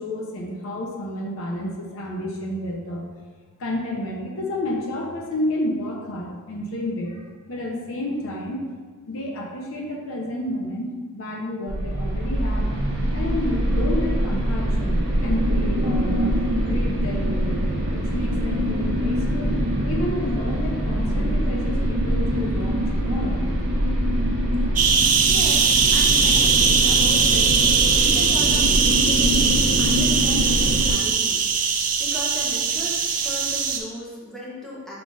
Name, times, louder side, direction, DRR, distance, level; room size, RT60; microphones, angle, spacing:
voice 1, 0.0-3.1 3.6-7.2 7.5-8.7 9.1-12.7 13.1-23.4, left 1 dB, 65° left, 0 dB, 0.7 m, -30 dB
sound 1, 11.7-30.9, equal, 50° right, 0.9 m, -23 dB
sound 2, 24.8-33.8, right 5 dB, 35° right, 0.4 m, -20 dB
voice 2, 25.3-31.4 32.0-35.0, left 1 dB, ahead, -6 dB, 0.9 m, -37 dB
5.8 x 3.7 x 2.4 m, 1.5 s
head